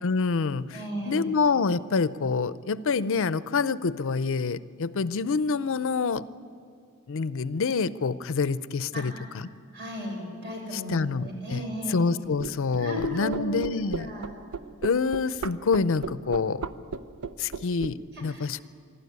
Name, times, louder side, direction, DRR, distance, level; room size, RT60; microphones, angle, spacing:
voice 1, 0.0-0.8 1.1-6.2 7.1-9.5 10.7-11.6 11.9-14.1 14.8-16.6 17.4-18.6, left 4 dB, 65° left, 16 dB, 0.5 m, -27 dB
voice 2, 0.7-1.3 8.9-9.2 9.7-12.0 12.7-13.7 14.0-14.3 18.1-18.6, left 1 dB, 55° right, 1 dB, 5.9 m, -35 dB
sound 1, 12.4-17.9, right 5 dB, 75° right, 0.8 m, -34 dB
25.0 x 12.5 x 9.5 m, 2.3 s
head